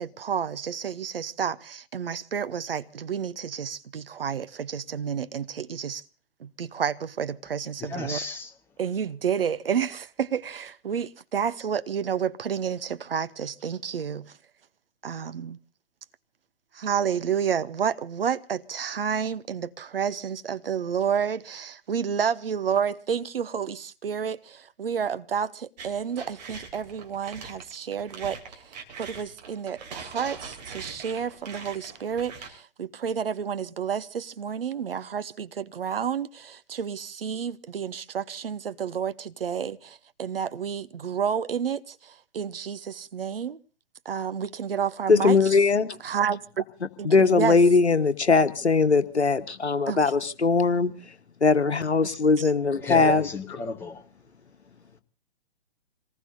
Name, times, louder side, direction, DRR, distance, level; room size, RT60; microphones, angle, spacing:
voice 1, 0.0-6.0 6.4-8.2 8.8-14.3 15.0-15.6 16.7-43.6 44.0-45.4 46.0-46.6 47.0-47.6 49.9-50.0 52.0-52.1 52.4-52.5, right 7 dB, 55° right, 0.9 m, -30 dB
voice 2, 7.9-8.5 52.8-54.0, left 3 dB, 5° left, 0.9 m, -33 dB
sound 1, 25.8-32.5, right 5 dB, 40° right, 3.1 m, -42 dB
voice 3, 45.1-46.0 47.0-51.1 51.4-53.3, left 4 dB, 75° left, 1.4 m, -21 dB
27.0 x 19.0 x 2.7 m
figure-of-eight pair, 125°, 33 cm